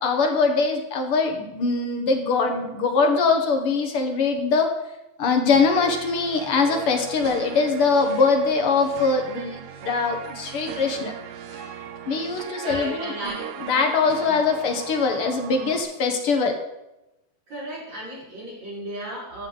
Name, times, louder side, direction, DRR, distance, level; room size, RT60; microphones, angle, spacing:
voice 1, 0.0-4.7 5.2-11.1 11.5-11.7 12.1-13.3 13.6-16.6, left 4 dB, 60° left, 3 dB, 1.4 m, -22 dB
sound 1, 5.5-15.8, right 9 dB, 85° right, 3.1 m, -38 dB
voice 2, 12.6-13.4 14.3-14.4 17.5-19.5, right 1 dB, 45° right, -8 dB, 6.5 m, -34 dB
15.0 x 11.0 x 4.1 m, 0.92 s
omnidirectional pair, 4.6 m